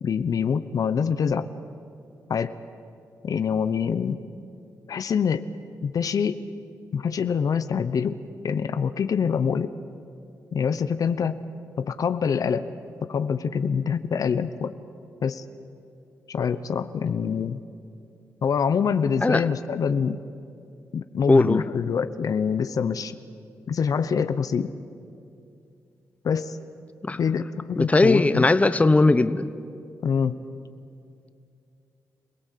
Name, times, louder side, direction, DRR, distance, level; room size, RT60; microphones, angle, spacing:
voice 1, 0.0-1.5 2.3-2.5 3.2-4.2 4.9-5.4 5.8-6.4 6.9-8.2 8.4-9.7 10.5-11.4 11.8-12.7 13.1-14.7 15.2-15.4 16.3-17.6 18.4-20.2 20.9-23.1 23.7-24.7 26.2-26.6 27.2-28.4 30.0-30.4, left 6 dB, 65° left, 12 dB, 0.8 m, -25 dB
voice 2, 21.3-21.6 27.0-27.2 27.8-29.5, left 2 dB, 20° left, 12 dB, 0.9 m, -19 dB
27.5 x 17.5 x 8.4 m, 2.5 s
cardioid pair, 65°, 7 cm